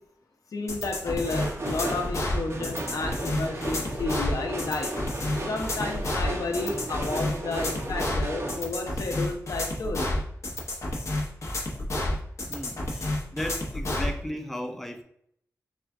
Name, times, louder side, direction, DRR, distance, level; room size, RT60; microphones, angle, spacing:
voice 1, 0.5-4.9 5.5-10.1, left 3 dB, 85° left, 2 dB, 0.7 m, -32 dB
sound 1, 0.7-14.1, left 1 dB, 55° left, 0.8 m, -30 dB
sound 2, 1.2-8.6, right 1 dB, 45° right, 0.8 m, -35 dB
voice 2, 12.5-15.0, equal, 5° left, 4 dB, 0.4 m, -35 dB
4.4 x 2.4 x 3.5 m, 0.69 s
wide cardioid pair, 115°, 6 cm